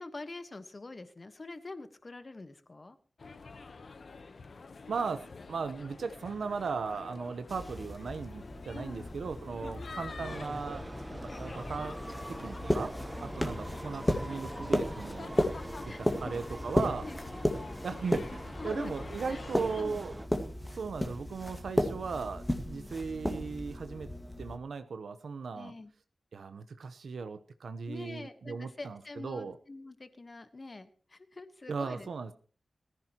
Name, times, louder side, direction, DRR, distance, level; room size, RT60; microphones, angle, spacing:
voice 1, 0.0-3.0 8.7-9.1 9.6-9.8 13.2-13.4 15.4-16.4 17.0-17.2 18.6-18.9 19.3-19.4 19.8-20.0 22.7-22.9 25.5-25.9 27.9-32.3, left 2 dB, 30° left, 10 dB, 1.3 m, -45 dB
sound 1, 3.2-19.8, left 4 dB, 55° left, 1.0 m, -47 dB
voice 2, 4.9-10.9 11.1-11.9 12.3-15.5 16.2-17.1 17.8-20.1 20.7-24.1 24.4-25.7 26.3-29.6 31.7-32.3, right 5 dB, 85° right, 10 dB, 0.9 m, -37 dB
sound 2, 7.5-24.6, left 1 dB, 10° left, 1.8 m, -35 dB
sound 3, 10.2-20.3, right 1 dB, 10° right, 0.9 m, -44 dB
20.5 x 14.5 x 3.0 m, 0.41 s
wide cardioid pair, 150°, 0 cm